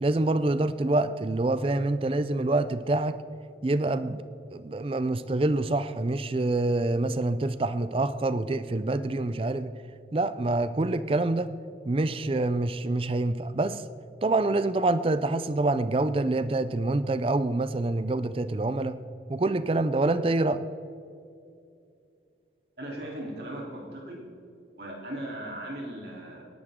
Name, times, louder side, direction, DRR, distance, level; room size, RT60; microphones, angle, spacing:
voice 1, 0.0-3.2 3.6-4.2 4.5-9.7 10.1-11.5 11.9-13.8 14.2-19.0 19.3-20.6, right 2 dB, 30° right, 13 dB, 0.4 m, -26 dB
voice 2, 22.8-24.2 24.7-26.5, right 1 dB, 65° right, -2 dB, 3.3 m, -38 dB
19.0 x 11.0 x 3.7 m, 2.5 s
head